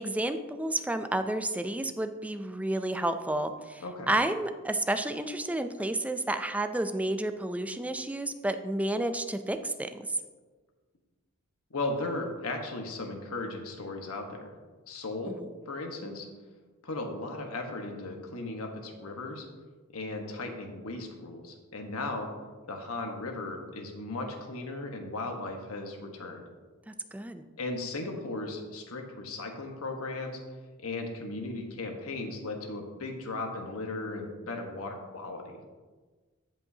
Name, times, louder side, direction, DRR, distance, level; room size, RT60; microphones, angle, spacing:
voice 1, 0.0-10.0 15.3-15.5 26.9-27.4, right 1 dB, 5° right, 8 dB, 0.4 m, -31 dB
voice 2, 11.7-14.5 14.9-15.4 15.7-16.3 16.8-19.4 19.9-22.3 22.7-26.4 27.6-30.4 30.8-35.6, left 2 dB, 90° left, 3 dB, 1.3 m, -36 dB
15.5 x 5.4 x 2.8 m, 1.4 s
head